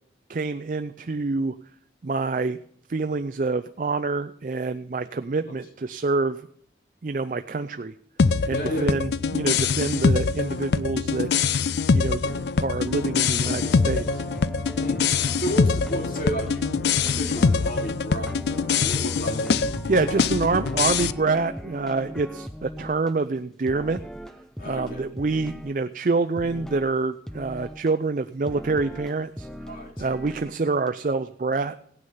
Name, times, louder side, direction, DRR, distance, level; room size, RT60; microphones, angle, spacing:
voice 1, 0.3-1.5 2.0-2.6 2.9-6.4 7.0-7.9 8.5-11.3 11.9-12.2 12.6-14.1 19.9-24.0 24.6-29.5 30.0-31.8, right 3 dB, 45° right, 9 dB, 0.4 m, -26 dB
sound 1, 8.2-21.1, left 5 dB, 70° left, 0.4 m, -24 dB
voice 2, 8.5-9.0 14.8-15.0 15.4-16.7 17.0-19.7 20.0-20.3 24.6-25.0 29.7-30.1, equal, 50° left, 2 dB, 2.5 m, -33 dB
sound 2, 12.2-23.1 23.7-25.8 26.1-26.2 26.4-27.0 27.3-27.9 28.5-30.6 30.9-31.0, equal, 5° left, 0.5 m, -39 dB
sound 3, 15.6-21.4, left 1 dB, 35° left, 4.3 m, -50 dB
17.0 x 9.6 x 5.6 m, 0.66 s
head